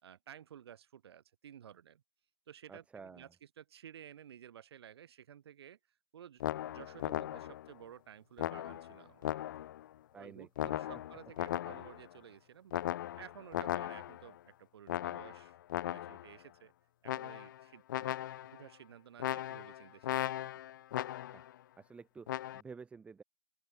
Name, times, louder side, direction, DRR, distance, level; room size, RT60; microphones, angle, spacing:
voice 1, 0.0-2.0 2.5-5.8 6.1-9.7 10.2-12.9 13.2-15.6 15.8-16.7 17.0-20.8, right 9 dB, 45° right, 5.5 m, -54 dB
voice 2, 2.7-3.3 10.1-10.7 21.3-21.5 21.8-23.2, right 5 dB, 5° right, 3.7 m, -51 dB
sound 1, 6.4-7.7 8.4-9.9 10.6-12.1 12.7-14.3 14.9-16.3 17.0-17.6 17.9-18.6 19.2-21.5 22.3-22.6, left 12 dB, 35° left, 1.0 m, -38 dB
open air
figure-of-eight pair, 145°, 18 cm